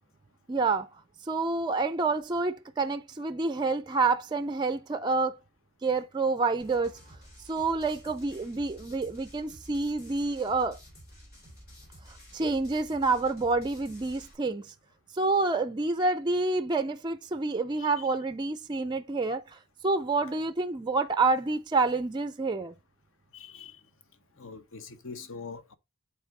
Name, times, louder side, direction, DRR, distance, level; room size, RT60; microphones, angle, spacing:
voice 1, 0.5-0.9 1.2-5.4 5.8-6.9 7.5-10.8 12.1-14.7 15.1-22.7, right 3 dB, 20° right, 0.4 m, -28 dB
sound 1, 6.6-14.3, equal, 50° left, 3.5 m, -51 dB
voice 2, 17.8-18.1 23.3-23.8 24.4-25.7, left 5 dB, 65° left, 0.9 m, -43 dB
8.0 x 4.1 x 3.7 m
head